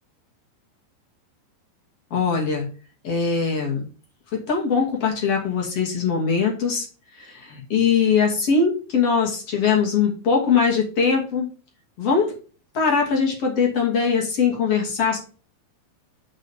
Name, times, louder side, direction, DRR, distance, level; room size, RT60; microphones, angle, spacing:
voice 1, 2.1-2.7 3.0-3.8 4.5-6.8 7.3-11.5 12.0-12.3 12.7-15.2, left 5 dB, 40° left, -1 dB, 3.1 m, -21 dB
9.0 x 6.6 x 3.7 m, 0.36 s
omnidirectional pair, 5.1 m